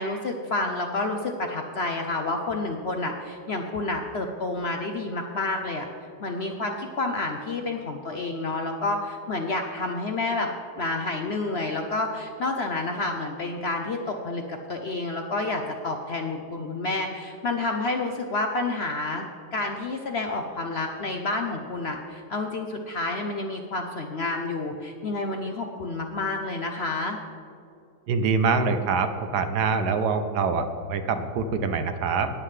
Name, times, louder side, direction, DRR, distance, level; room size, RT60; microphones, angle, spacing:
voice 1, 0.0-5.9 6.2-10.5 10.8-19.3 19.5-27.2, left 2 dB, 55° left, 4 dB, 0.7 m, -29 dB
voice 2, 28.1-32.3, right 5 dB, 75° right, 9 dB, 1.3 m, -25 dB
19.0 x 7.5 x 3.3 m, 2.5 s
omnidirectional pair, 1.8 m